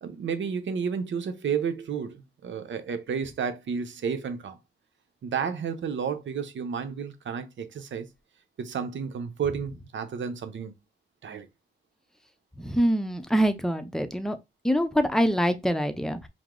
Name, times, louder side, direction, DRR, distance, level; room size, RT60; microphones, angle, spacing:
voice 1, 0.0-4.6 5.2-8.1 8.6-10.8 11.2-11.5, right 6 dB, 80° right, 0.8 m, -31 dB
voice 2, 12.6-14.4 14.6-16.3, equal, 5° left, 0.5 m, -25 dB
5.0 x 2.0 x 3.7 m
wide cardioid pair, 110°, 19 cm